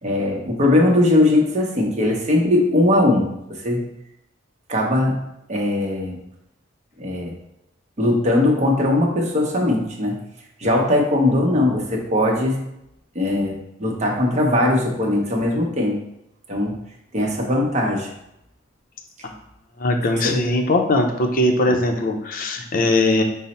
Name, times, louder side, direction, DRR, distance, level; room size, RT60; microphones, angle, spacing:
voice 1, 0.0-3.9 4.7-5.2 5.5-6.2 7.0-7.3 8.0-10.2 10.6-12.6 13.1-13.5 13.8-16.0 16.5-16.8 17.1-18.1 20.2-20.3 21.7-21.8, left 1 dB, 35° right, -1 dB, 0.8 m, -20 dB
voice 2, 19.8-23.2, left 1 dB, 45° left, 3 dB, 0.5 m, -20 dB
5.3 x 2.0 x 4.1 m, 0.82 s
head